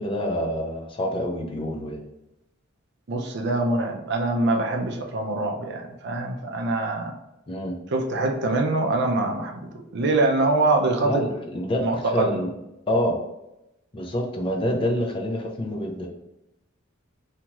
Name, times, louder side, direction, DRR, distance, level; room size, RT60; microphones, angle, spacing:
voice 1, 0.0-2.0 7.5-7.8 11.0-12.5 12.9-13.2 13.9-16.1, left 1 dB, 25° left, 1 dB, 0.4 m, -27 dB
voice 2, 3.1-7.1 7.9-11.2 11.8-12.4, right 2 dB, 55° right, 3 dB, 0.4 m, -24 dB
2.8 x 2.3 x 2.9 m, 0.89 s
head